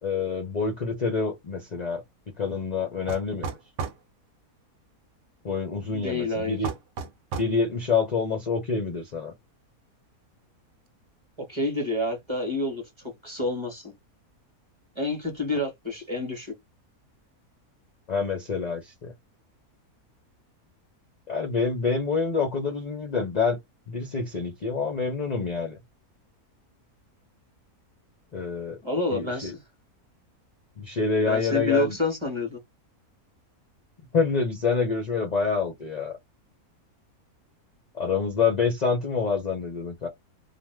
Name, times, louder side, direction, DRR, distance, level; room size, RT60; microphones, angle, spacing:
voice 1, 0.0-3.5 5.4-6.7 7.4-9.3 18.1-19.1 21.3-23.6 23.9-25.8 28.3-28.8 29.1-29.5 30.8-32.0 34.1-36.2 37.9-40.1, left 5 dB, 55° left, 0.4 m, -27 dB
sound 1, 3.1-4.0 6.6-7.6, right 5 dB, 65° right, 0.8 m, -33 dB
voice 2, 5.9-6.6 11.4-12.8 13.2-13.9 15.0-16.5 28.8-29.6 31.3-32.6, left 1 dB, 20° right, 0.9 m, -28 dB
2.6 x 2.1 x 3.2 m
omnidirectional pair, 1.6 m